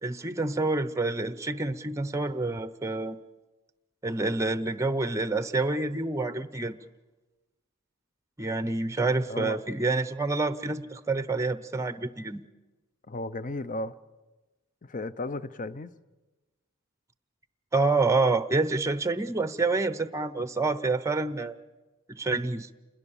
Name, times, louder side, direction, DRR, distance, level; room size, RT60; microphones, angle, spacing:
voice 1, 0.0-3.2 4.0-6.8 8.4-12.4 17.7-21.6 22.1-22.7, right 3 dB, 15° right, 14 dB, 0.7 m, -28 dB
voice 2, 9.3-9.6 13.1-13.9 14.8-15.9, left 2 dB, 35° left, 15 dB, 0.7 m, -34 dB
28.0 x 21.0 x 7.1 m, 1.2 s
head